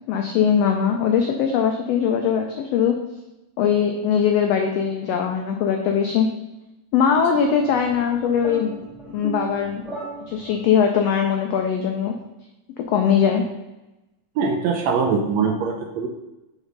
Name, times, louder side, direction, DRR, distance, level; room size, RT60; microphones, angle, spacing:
voice 1, 0.1-2.9 3.6-6.3 6.9-8.8 9.0-9.8 10.3-12.1 12.9-13.4, left 7 dB, 90° left, 4 dB, 1.4 m, -21 dB
sound 1, 7.4-10.9, right 4 dB, ahead, 0.6 m, -37 dB
voice 2, 14.4-16.1, right 5 dB, 80° right, 2 dB, 1.6 m, -22 dB
5.1 x 5.0 x 5.3 m, 0.99 s
omnidirectional pair, 3.5 m